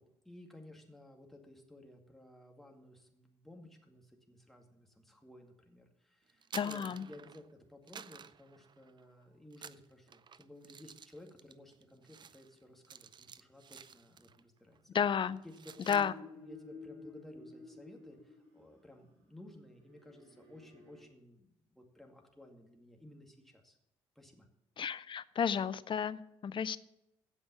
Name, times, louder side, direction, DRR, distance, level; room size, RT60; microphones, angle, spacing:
voice 1, 0.0-14.8 15.4-16.1 16.4-23.8 24.2-24.5, left 1 dB, ahead, 2 dB, 2.2 m, -56 dB
sound 1, 6.3-7.5 7.9-9.1 9.5-14.4 14.7-15.0 15.3-16.1, right 7 dB, 35° right, 0.5 m, -52 dB
voice 2, 6.5-7.0 14.9-15.4 15.9-16.1 24.8-26.8, left 7 dB, 35° left, 15 dB, 0.6 m, -32 dB
sound 2, 15.9-18.8 19.8-21.0, left 3 dB, 75° right, 2.9 m, -52 dB
15.5 x 5.4 x 6.9 m, 0.86 s
figure-of-eight pair, 45°, 14 cm